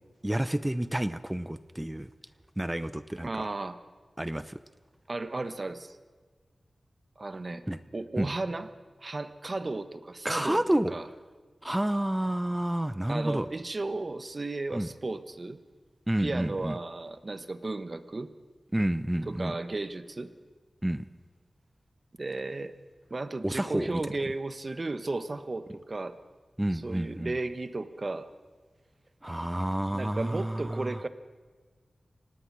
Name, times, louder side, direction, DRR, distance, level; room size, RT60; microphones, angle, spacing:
voice 1, 0.2-2.1 2.6-3.5 4.2-4.6 7.7-7.8 8.2-8.3 10.2-10.9 11.6-13.5 14.7-14.9 16.1-16.8 18.7-19.6 20.8-21.1 23.4-24.0 26.6-27.3 29.2-31.0, right 1 dB, 15° right, 14 dB, 0.8 m, -29 dB
voice 2, 3.2-3.8 5.1-6.0 7.2-7.6 7.9-8.7 9.0-11.1 13.1-15.6 16.2-18.3 19.3-20.3 22.2-22.7 23.1-26.2 26.7-28.3 29.9-31.1, right 2 dB, 45° right, 12 dB, 1.3 m, -34 dB
25.0 x 18.5 x 6.3 m, 1.5 s
cardioid pair, 50°, 0 cm